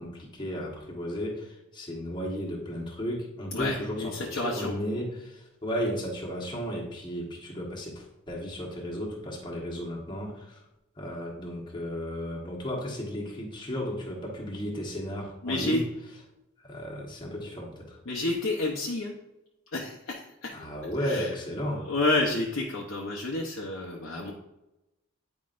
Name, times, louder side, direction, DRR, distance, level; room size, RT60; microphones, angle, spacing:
voice 1, 0.0-10.6 11.0-15.8 16.6-18.0 20.5-21.8, equal, 20° left, -3 dB, 1.3 m, -34 dB
voice 2, 3.5-4.7 15.4-15.8 18.1-19.1 19.7-20.5 21.0-21.3 21.8-24.3, left 2 dB, 60° left, -2 dB, 0.8 m, -30 dB
9.4 x 4.8 x 2.5 m, 0.93 s
head